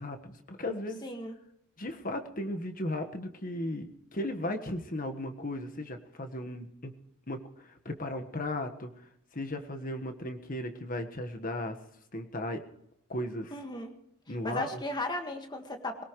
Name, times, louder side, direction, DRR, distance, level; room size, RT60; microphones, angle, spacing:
voice 1, 0.0-1.0 1.8-6.9 7.3-8.9 9.3-11.8 12.1-12.6 13.1-13.5 14.3-14.8, left 1 dB, 40° left, 6 dB, 1.4 m, -36 dB
voice 2, 1.0-1.4 13.5-13.9 14.4-16.0, left 1 dB, 20° left, 5 dB, 1.8 m, -36 dB
22.0 x 18.0 x 3.2 m, 0.76 s
head